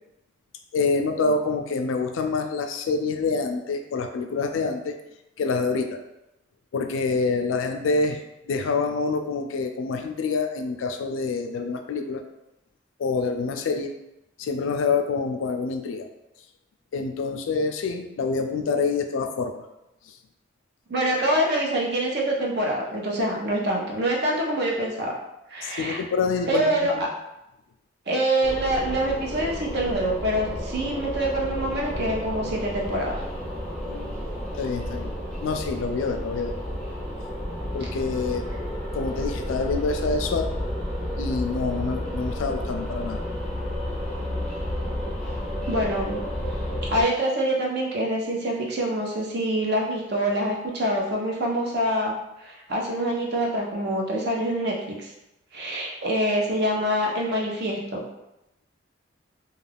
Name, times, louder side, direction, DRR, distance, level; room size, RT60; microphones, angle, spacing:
voice 1, 0.7-5.0 5.4-6.0 6.7-12.2 13.0-13.9 14.4-16.1 16.9-19.6 25.6-27.1 33.9-34.2 34.6-35.1 35.4-36.6 37.7-38.4 38.9-40.5 41.2-43.2, left 4 dB, 80° left, 5 dB, 0.3 m, -26 dB
voice 2, 20.9-25.1 25.5-26.0 26.5-27.1 28.1-33.2 45.7-46.2 46.9-52.1 52.4-55.1 55.5-58.0, right 1 dB, 55° right, -2 dB, 0.6 m, -25 dB
sound 1, 28.4-47.0, equal, 5° left, 0.5 m, -31 dB
2.3 x 2.3 x 3.3 m, 0.90 s
head